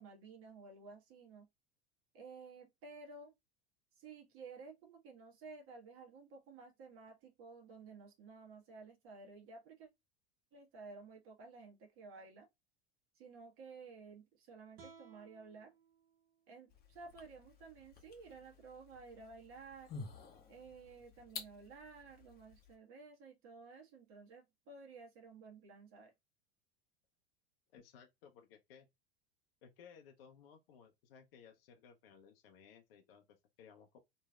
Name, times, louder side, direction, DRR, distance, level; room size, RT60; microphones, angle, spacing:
voice 1, 0.0-1.5 2.1-3.3 4.0-9.9 10.5-12.5 13.2-15.7 16.5-19.9 20.5-26.1, right 4 dB, 45° right, 1.3 m, -54 dB
sound 1, 14.8-17.9, right 5 dB, 65° right, 1.1 m, -63 dB
sound 2, 16.7-22.8, left 5 dB, 30° left, 0.8 m, -53 dB
voice 2, 27.7-28.9 29.6-34.0, left 7 dB, 65° left, 0.6 m, -60 dB
3.0 x 2.6 x 2.2 m
hypercardioid pair, 85°, 32 cm